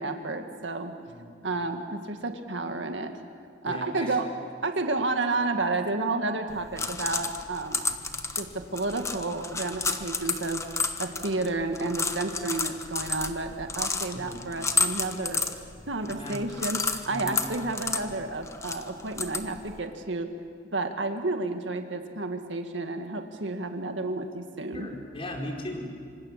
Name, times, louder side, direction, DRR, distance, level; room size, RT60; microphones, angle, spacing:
voice 1, 0.0-0.9 1.4-3.1 3.6-4.3 4.6-7.8 8.3-10.6 11.0-15.4 15.9-20.3 20.7-24.9, right 3 dB, 85° right, 5 dB, 1.9 m, -31 dB
voice 2, 3.6-4.2 14.1-14.5 16.0-16.4 17.1-17.6 24.7-25.9, left 1 dB, 30° left, 0 dB, 4.7 m, -38 dB
sound 1, 6.5-19.8, left 4 dB, 15° left, 1.3 m, -32 dB
26.5 x 25.5 x 7.5 m, 2.3 s
head